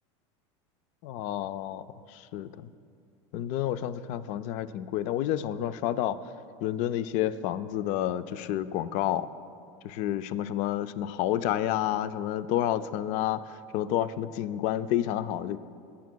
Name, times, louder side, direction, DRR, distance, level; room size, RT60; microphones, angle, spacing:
voice 1, 1.0-2.7 3.3-6.2 6.6-9.3 9.8-15.6, left 12 dB, 55° left, 14 dB, 0.4 m, -30 dB
16.5 x 8.3 x 2.2 m, 2.3 s
supercardioid pair, 110°, 15 cm